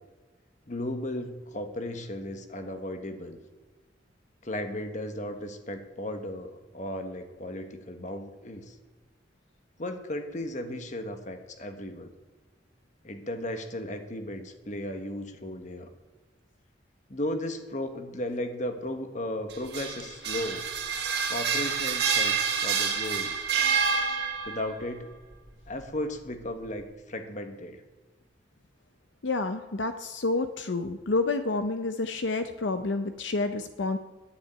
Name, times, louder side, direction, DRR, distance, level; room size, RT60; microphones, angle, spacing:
voice 1, 0.7-3.4 4.4-8.8 9.8-12.1 13.0-15.9 17.1-20.6 21.3-23.5 24.5-25.1 25.7-27.8, left 1 dB, 40° left, 7 dB, 1.3 m, -35 dB
sound 1, 19.5-24.7, right 6 dB, 60° right, 2.0 m, -28 dB
voice 2, 29.2-34.0, left 3 dB, 75° left, 9 dB, 0.7 m, -29 dB
10.5 x 7.3 x 9.2 m, 1.3 s
head